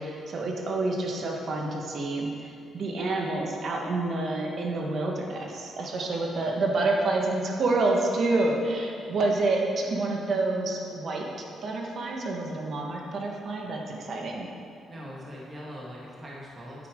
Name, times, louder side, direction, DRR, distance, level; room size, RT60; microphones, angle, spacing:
voice 1, 0.0-14.5, right 2 dB, 55° right, 0 dB, 1.4 m, -28 dB
voice 2, 14.9-16.9, equal, 30° right, -5 dB, 1.9 m, -41 dB
9.3 x 8.4 x 3.8 m, 2.5 s
cardioid pair, 90°, 0 cm